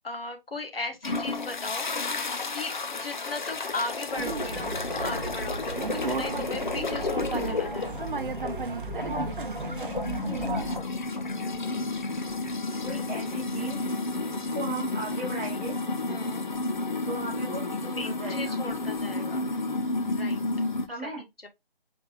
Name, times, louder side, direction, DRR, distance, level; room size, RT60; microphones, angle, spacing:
voice 1, 0.0-1.9 2.5-8.1 11.2-11.8 16.1-16.5 18.0-19.5 20.1-20.4 21.0-21.5, left 2 dB, 75° left, 1.3 m, -37 dB
sound 1, 1.0-20.9, left 3 dB, 50° left, 0.6 m, -32 dB
sound 2, 4.2-10.8, right 3 dB, 60° right, 0.7 m, -33 dB
voice 2, 10.3-10.8 12.8-13.8 14.2-15.8 17.1-18.6 20.9-21.2, right 2 dB, 10° right, 0.9 m, -37 dB
5.1 x 3.2 x 2.3 m
figure-of-eight pair, 155°, 30 cm